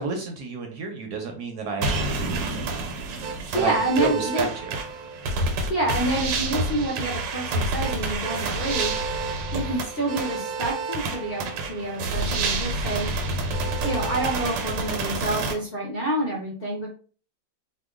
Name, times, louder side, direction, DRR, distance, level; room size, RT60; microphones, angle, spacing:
voice 1, 0.0-2.6 3.6-3.7 4.0-4.8, right 4 dB, 70° right, 3 dB, 1.0 m, -30 dB
sound 1, 1.8-15.5, right 3 dB, 90° right, 1.4 m, -28 dB
voice 2, 3.5-4.4 5.7-8.9 9.5-13.1 13.8-16.9, right 1 dB, 45° left, -3 dB, 0.7 m, -28 dB
2.9 x 2.2 x 3.5 m, 0.39 s
omnidirectional pair, 2.0 m